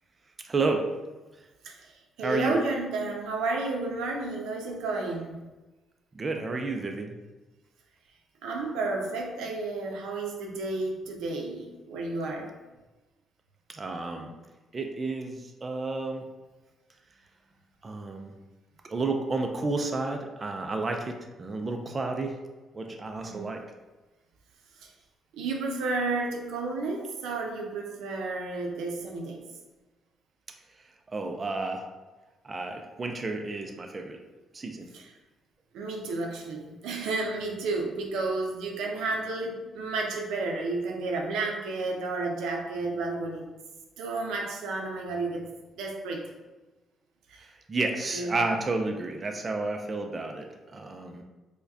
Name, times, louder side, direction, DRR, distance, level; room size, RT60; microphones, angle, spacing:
voice 1, 0.4-0.9 2.2-2.5 6.1-7.1 13.7-14.3 14.7-16.2 17.8-18.3 18.8-22.4 22.7-23.6 31.1-31.9 32.4-34.2 34.5-34.9 47.7-51.2, right 3 dB, 30° right, 3 dB, 0.4 m, -31 dB
voice 2, 1.6-5.4 8.4-12.5 23.2-23.5 24.8-24.9 25.3-29.4 34.9-35.1 35.7-43.5 44.0-45.5 45.7-46.2 47.3-47.5 48.1-48.4, right 3 dB, 90° right, 1 dB, 0.5 m, -32 dB
4.6 x 2.2 x 2.6 m, 1.2 s
cardioid pair, 90°, 0 cm